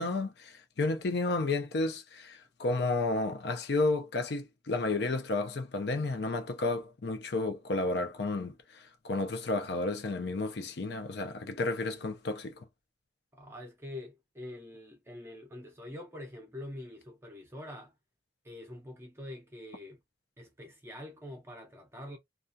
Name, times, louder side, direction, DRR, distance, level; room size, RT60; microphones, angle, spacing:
voice 1, 0.0-12.6, left 2 dB, 60° left, 0.5 m, -32 dB
voice 2, 13.3-17.9 18.4-20.0 20.4-22.2, left 1 dB, 15° right, 0.6 m, -45 dB
2.3 x 2.3 x 2.5 m
head